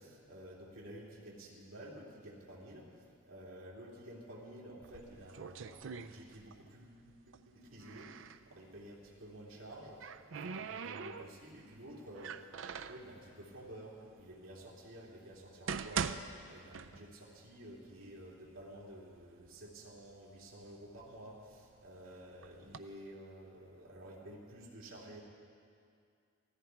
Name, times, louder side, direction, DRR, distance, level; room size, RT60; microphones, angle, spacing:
voice 1, 0.0-2.9 3.3-8.1 8.5-10.0 10.3-25.2, right 1 dB, 85° right, -3 dB, 2.6 m, -51 dB
sound 1, 4.8-6.7 7.0-8.4 9.5-11.6 12.1-13.1 13.8-13.9 14.6-14.7 15.3-17.3 17.6-17.7 18.5-18.6 18.9-19.6 20.1-21.8 22.4-22.8, right 6 dB, 65° right, 0.5 m, -42 dB
15.5 x 14.5 x 4.6 m, 2.4 s
head